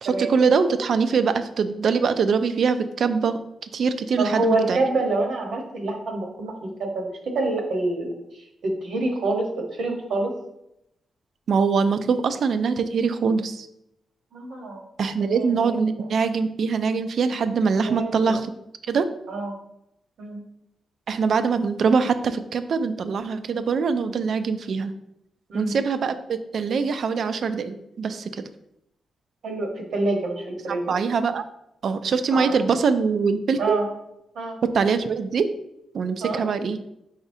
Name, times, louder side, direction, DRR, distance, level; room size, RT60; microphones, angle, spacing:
voice 1, 0.0-3.4 3.7-4.8 11.5-13.7 15.0-18.5 18.9-19.1 21.1-24.9 25.5-28.4 30.7-31.4 31.8-33.8 34.7-35.4 35.9-36.8, right 5 dB, 60° right, 11 dB, 0.3 m, -23 dB
voice 2, 4.2-6.5 6.8-8.1 8.6-9.5 9.7-10.3 14.3-14.8 15.2-15.8 17.9-18.2 19.3-19.6 20.2-20.4 25.5-25.8 29.4-30.9 32.3-32.5 33.6-33.8 34.3-34.6 36.2-36.5, right 2 dB, 75° right, 1 dB, 1.1 m, -26 dB
4.9 x 4.0 x 2.7 m, 0.82 s
wide cardioid pair, 135°, 0 cm